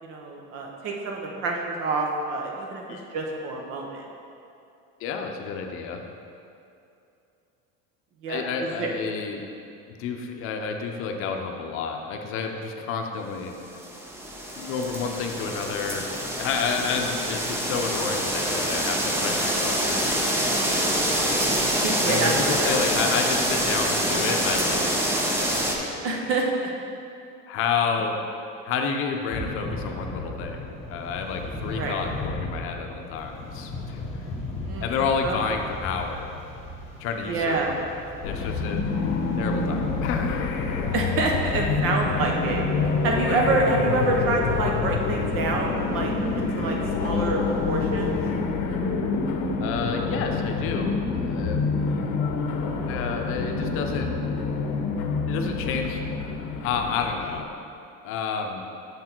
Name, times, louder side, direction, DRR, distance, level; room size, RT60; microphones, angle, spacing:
voice 1, 0.0-4.0 8.2-8.9 21.8-22.8 26.0-26.7 28.0-28.1 31.7-32.0 34.7-34.9 35.2-35.6 37.2-37.7 40.9-42.6 43.0-48.2, right 3 dB, 50° right, 0 dB, 1.1 m, -27 dB
voice 2, 5.0-6.0 8.3-9.4 9.9-13.5 14.6-16.1 16.4-20.9 22.0-26.1 27.5-28.1 28.6-34.0 34.8-36.3 37.0-38.8 39.4-40.5 49.6-51.7 52.9-54.1 55.3-56.0 56.6-57.5 58.0-58.6, left 5 dB, 45° left, 4 dB, 0.7 m, -30 dB
sound 1, 13.7-25.7, equal, 10° right, 0.5 m, -26 dB
Thunder / Rain, 29.3-48.3, left 2 dB, 20° left, 1.2 m, -38 dB
sound 2, 38.2-57.4, left 4 dB, 85° left, 0.8 m, -27 dB
6.9 x 6.2 x 4.5 m, 2.6 s
cardioid pair, 170°, 29 cm